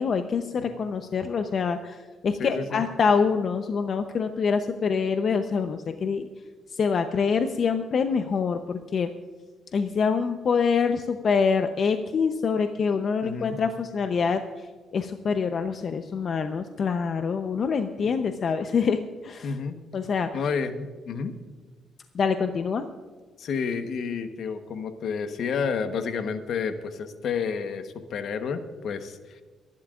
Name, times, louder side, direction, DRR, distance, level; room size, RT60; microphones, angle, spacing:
voice 1, 0.0-6.3 6.7-9.1 9.7-14.7 14.9-19.5 19.9-20.3 22.1-22.8, left 5 dB, 50° left, 7 dB, 0.8 m, -25 dB
voice 2, 2.4-2.8 13.2-13.6 19.4-19.8 20.3-21.3 23.4-29.4, left 5 dB, 70° left, 8 dB, 1.1 m, -30 dB
25.0 x 11.5 x 2.5 m, 1.4 s
cardioid pair, 90°, 0 cm